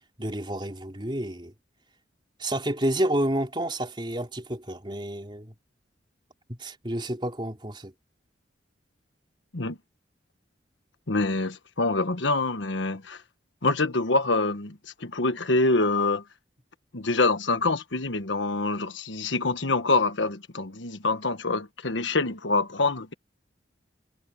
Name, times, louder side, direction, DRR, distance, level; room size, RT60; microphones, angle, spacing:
voice 1, 0.2-1.5 2.4-5.5 6.5-7.9, right 1 dB, 25° right, 3.8 m, -29 dB
voice 2, 11.1-13.2 13.6-16.2 16.9-23.1, left 3 dB, 85° left, 1.4 m, -25 dB
head